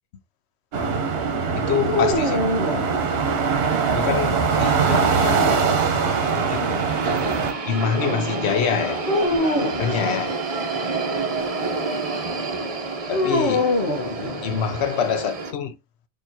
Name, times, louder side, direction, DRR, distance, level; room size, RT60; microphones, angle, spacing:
sound 1, 0.7-7.5, right 5 dB, 65° right, 1.0 m, -22 dB
voice 1, 1.6-3.1 4.0-5.6 6.3-6.9 7.7-9.0 9.8-10.4 13.1-13.7 14.4-15.8, left 7 dB, 80° left, 0.9 m, -26 dB
sound 2, 1.9-3.4 5.1-6.2 9.1-9.9 13.1-14.8, left 2 dB, 60° left, 1.1 m, -25 dB
sound 3, 3.3-15.5, right 3 dB, 40° right, 0.7 m, -29 dB
4.3 x 3.1 x 2.7 m
omnidirectional pair, 1.1 m